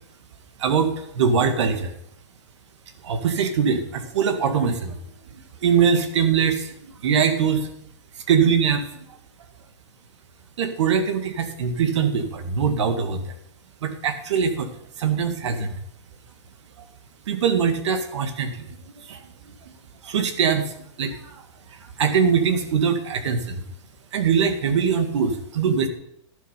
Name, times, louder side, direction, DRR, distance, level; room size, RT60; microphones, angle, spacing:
voice 1, 0.6-1.9 3.0-5.0 5.6-6.7 7.0-7.7 8.3-8.9 10.6-13.3 13.8-14.7 15.0-15.7 17.3-18.5 19.1-19.2 20.0-21.4 22.0-23.6 24.1-25.9, right 6 dB, 75° right, 8 dB, 1.8 m, -22 dB
11.5 x 7.0 x 5.7 m, 0.73 s
hypercardioid pair, 145°, 15 cm